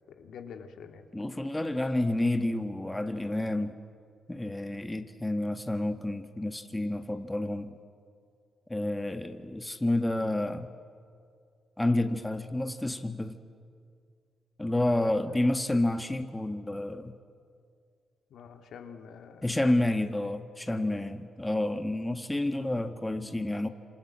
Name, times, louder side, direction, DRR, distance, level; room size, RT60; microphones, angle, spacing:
voice 1, 0.2-1.4 15.3-15.4 18.3-19.6 20.7-21.1, left 6 dB, 75° left, 5 dB, 2.2 m, -47 dB
voice 2, 1.1-3.7 4.3-7.8 8.7-10.7 11.8-13.4 14.6-17.1 19.4-23.7, left 1 dB, 15° left, 7 dB, 1.6 m, -29 dB
27.0 x 26.5 x 7.6 m, 2.2 s
cardioid pair, 65°, 0 cm